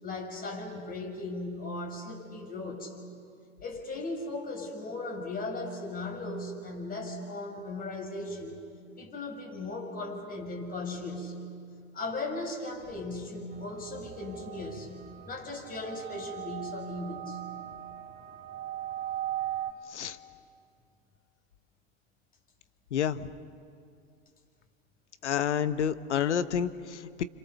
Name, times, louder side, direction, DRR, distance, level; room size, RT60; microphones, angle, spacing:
voice 1, 0.0-2.9 3.6-8.6 9.0-11.3 11.9-15.0 15.3-17.4, left 2 dB, 25° left, 2 dB, 6.5 m, -37 dB
sound 1, 13.5-19.7, right 12 dB, 25° right, 2.7 m, -39 dB
voice 2, 22.9-23.3 25.2-27.2, left 8 dB, 80° left, 13 dB, 1.1 m, -29 dB
29.5 x 26.5 x 6.9 m, 2.3 s
hypercardioid pair, 95°, 34 cm